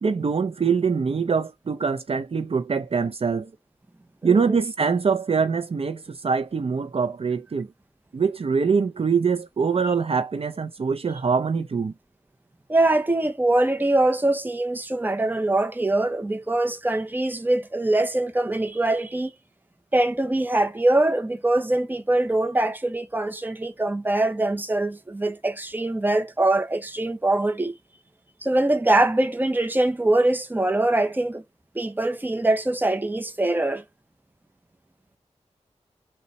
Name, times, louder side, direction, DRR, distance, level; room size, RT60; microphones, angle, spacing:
voice 1, 0.0-3.5 4.2-7.7 8.1-11.9, right 5 dB, 55° right, 0.5 m, -24 dB
voice 2, 4.2-4.6 12.7-19.3 19.9-27.7 28.4-31.4 31.7-33.8, right 2 dB, 15° right, 0.7 m, -23 dB
3.9 x 2.2 x 4.1 m
cardioid pair, 50°, 12 cm